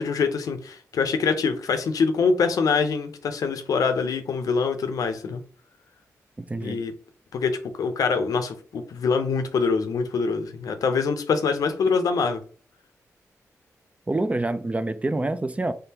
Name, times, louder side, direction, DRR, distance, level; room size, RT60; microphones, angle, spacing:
voice 1, 0.0-5.4 6.6-6.9 7.3-12.4, left 5 dB, 80° left, 0.6 m, -24 dB
voice 2, 6.4-6.8 14.1-15.7, right 2 dB, 20° right, 0.4 m, -27 dB
3.7 x 3.4 x 2.8 m
cardioid pair, 60°, 6 cm